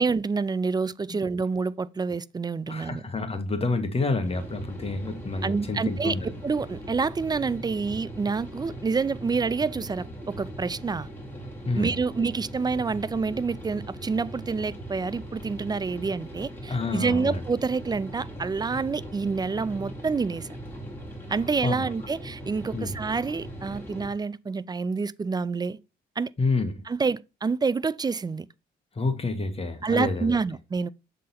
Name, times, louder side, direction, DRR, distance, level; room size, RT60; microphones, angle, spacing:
voice 1, 0.0-3.0 5.4-11.1 11.7-20.5 21.3-25.8 26.2-26.3 26.9-28.5 29.8-30.9, right 4 dB, 20° right, 0.3 m, -28 dB
voice 2, 2.7-6.3 11.7-11.9 16.7-17.4 21.6-21.8 22.7-22.9 26.4-26.7 28.9-30.4, left 3 dB, 30° left, 1.4 m, -28 dB
sound 1, 4.2-24.1, right 1 dB, 10° left, 2.6 m, -40 dB
7.5 x 3.9 x 4.1 m
cardioid pair, 90°, 20 cm